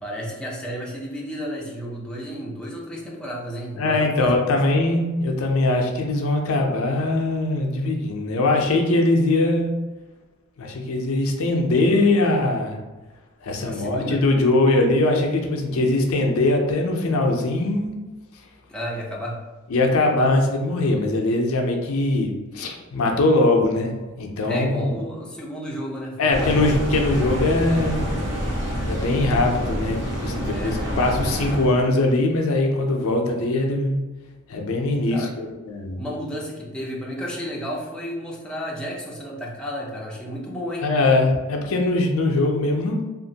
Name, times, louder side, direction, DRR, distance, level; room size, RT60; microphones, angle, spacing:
voice 1, 0.0-4.3 13.6-14.2 18.7-19.4 24.5-26.7 30.5-30.8 35.1-35.3 36.0-40.9, equal, 5° left, -4 dB, 0.4 m, -32 dB
voice 2, 3.8-9.7 10.6-12.8 13.4-17.9 19.7-23.9 24.2-24.9 26.2-28.0 28.8-34.0 34.5-36.0 40.8-43.0, left 2 dB, 70° left, 2 dB, 0.5 m, -21 dB
sound 1, 26.3-31.8, equal, 60° right, 1.1 m, -27 dB
2.8 x 2.4 x 2.7 m, 1.2 s
head